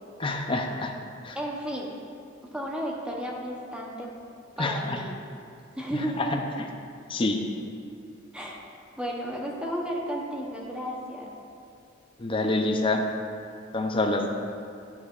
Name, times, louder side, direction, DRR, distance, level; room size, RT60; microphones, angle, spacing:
voice 1, 0.2-0.9 1.2-1.4 4.6-5.0 6.2-6.3 7.1-7.4 12.2-13.1 13.7-14.3, left 2 dB, 25° left, 2 dB, 0.5 m, -26 dB
voice 2, 1.3-1.9 2.5-4.1 4.6-5.2 5.7-6.5 8.3-8.6 9.0-11.3, equal, 5° right, -2 dB, 0.8 m, -33 dB
9.7 x 8.5 x 2.4 m, 2.4 s
head